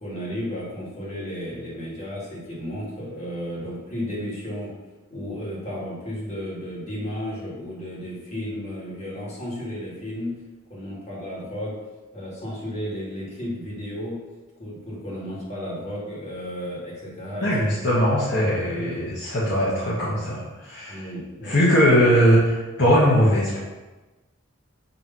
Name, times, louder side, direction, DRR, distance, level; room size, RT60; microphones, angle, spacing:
voice 1, 0.0-4.7 5.1-10.3 10.7-11.8 12.1-14.2 14.6-17.5 17.8-17.9 18.5-19.1 20.9-21.6, equal, 30° left, -7 dB, 2.2 m, -33 dB
voice 2, 17.4-21.0 21.4-23.6, equal, 55° left, -8 dB, 1.4 m, -20 dB
6.8 x 3.2 x 5.4 m, 1.2 s
head